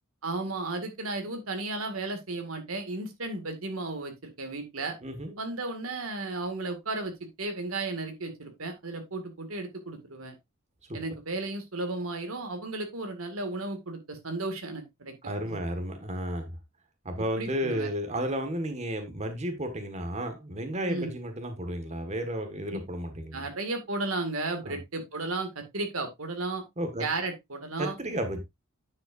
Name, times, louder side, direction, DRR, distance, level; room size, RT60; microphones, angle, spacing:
voice 1, 0.2-4.9 5.4-10.3 10.9-15.6 17.4-17.9 20.9-21.1 22.7-22.8 23.3-26.6 27.0-27.9, right 2 dB, 80° right, 2.1 m, -34 dB
voice 2, 5.0-5.4 10.9-11.0 15.2-16.5 17.0-23.5 24.6-24.8 26.8-27.0 27.8-28.4, equal, 35° right, 1.6 m, -33 dB
9.7 x 7.6 x 2.6 m
head